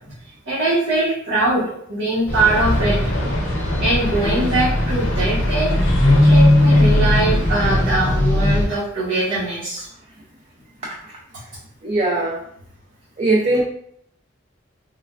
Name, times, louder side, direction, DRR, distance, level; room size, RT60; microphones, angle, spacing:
voice 1, 0.5-3.0 3.8-5.7 6.1-9.9, right 2 dB, 85° right, -11 dB, 1.0 m, -21 dB
sound 1, 2.3-8.7, left 1 dB, 10° left, 0.6 m, -18 dB
sound 2, 2.4-7.9, left 1 dB, 85° left, 0.6 m, -28 dB
voice 2, 11.8-12.4 13.2-13.6, right 2 dB, 30° right, -4 dB, 0.4 m, -19 dB
3.2 x 2.2 x 2.3 m, 0.69 s
head